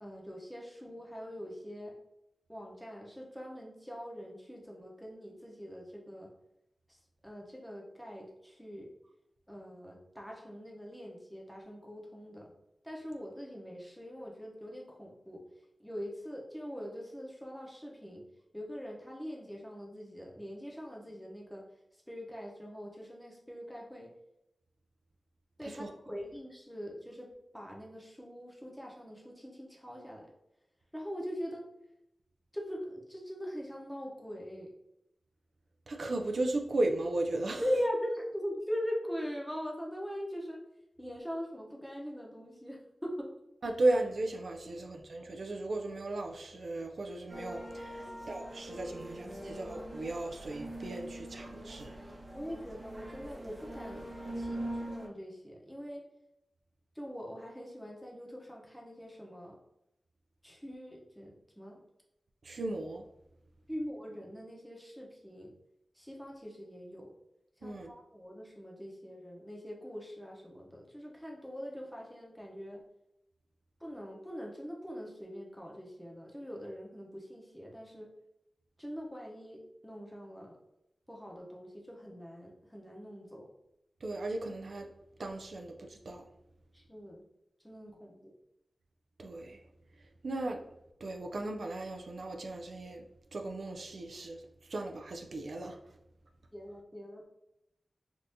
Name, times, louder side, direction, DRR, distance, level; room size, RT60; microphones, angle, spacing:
voice 1, 0.0-1.9 2.5-6.3 7.2-8.9 9.5-12.5 12.8-15.4 15.8-18.2 18.5-21.6 22.1-24.1 25.6-30.3 30.9-31.6 32.5-34.7 37.6-40.6 41.0-43.3 44.6-44.7 48.0-48.3 52.3-54.1 54.4-56.0 57.0-59.6 60.4-61.8 63.7-65.5 65.9-67.1 67.6-72.8 73.8-78.1 78.8-80.6 81.1-83.5 86.7-87.2 87.6-88.3 96.5-97.2, equal, 5° left, -1 dB, 0.8 m, -42 dB
voice 2, 35.9-37.6 43.6-52.0 62.4-63.0 67.6-67.9 84.0-84.9 85.2-86.3 89.2-89.6 90.0-90.7 91.0-93.0 93.3-95.9, right 2 dB, 70° right, 3 dB, 0.3 m, -36 dB
sound 1, 47.3-55.1, right 1 dB, 30° right, 0.8 m, -43 dB
3.4 x 2.6 x 2.7 m, 0.84 s
wide cardioid pair, 80°, 0 cm